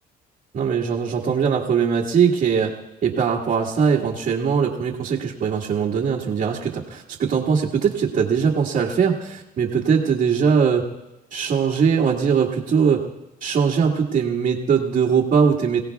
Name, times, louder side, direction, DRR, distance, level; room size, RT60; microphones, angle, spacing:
voice 1, 0.5-2.7 3.0-10.9 11.3-13.1 13.4-15.8, right 6 dB, 50° right, -4 dB, 1.7 m, -21 dB
26.5 x 17.0 x 2.3 m, 0.97 s
cardioid pair, 110°, 17 cm